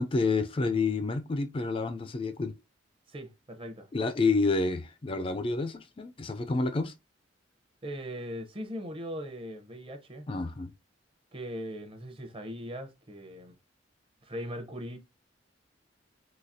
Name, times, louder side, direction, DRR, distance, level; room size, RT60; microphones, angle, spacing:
voice 1, 0.0-2.5 3.9-6.9 10.3-10.7, left 3 dB, 30° left, 0.4 m, -29 dB
voice 2, 3.1-3.9 7.8-10.3 11.3-13.5 14.2-15.0, equal, 30° right, 0.7 m, -39 dB
4.0 x 2.7 x 2.7 m
head